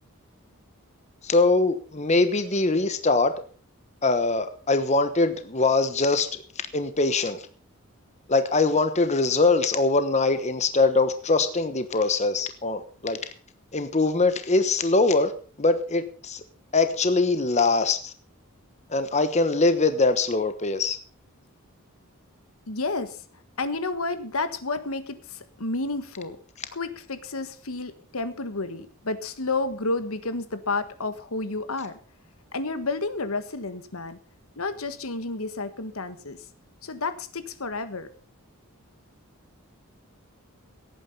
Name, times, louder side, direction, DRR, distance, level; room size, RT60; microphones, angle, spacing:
voice 1, 1.2-3.3 4.0-6.3 6.7-7.4 8.3-13.2 13.7-15.3 15.6-16.4 16.7-18.1 18.9-21.0, left 3 dB, 30° left, 10 dB, 1.2 m, -22 dB
voice 2, 22.7-23.2 23.6-26.4 26.7-32.0 32.5-34.2 34.6-36.4 36.8-38.1, left 3 dB, 80° left, 11 dB, 1.5 m, -31 dB
17.5 x 9.1 x 5.5 m, 0.41 s
head